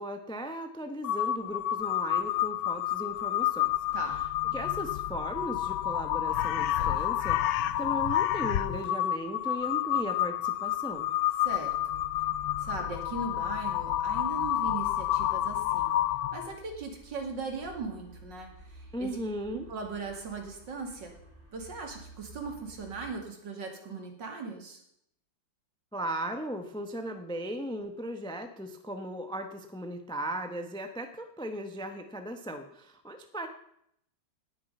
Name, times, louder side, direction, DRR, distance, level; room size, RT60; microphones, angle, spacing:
voice 1, 0.0-3.7 4.5-11.1 18.9-19.7 25.9-33.5, equal, 5° left, 7 dB, 0.5 m, -37 dB
Crow, 1.0-16.5, left 13 dB, 90° left, 1.4 m, -29 dB
voice 2, 11.4-12.0 12.6-15.9 16.3-19.1 19.7-21.1 21.5-24.8, right 4 dB, 65° right, 3 dB, 2.8 m, -39 dB
sound 1, 12.8-23.1, right 1 dB, 25° left, 5.4 m, -53 dB
18.5 x 6.8 x 5.5 m, 0.73 s
omnidirectional pair, 2.1 m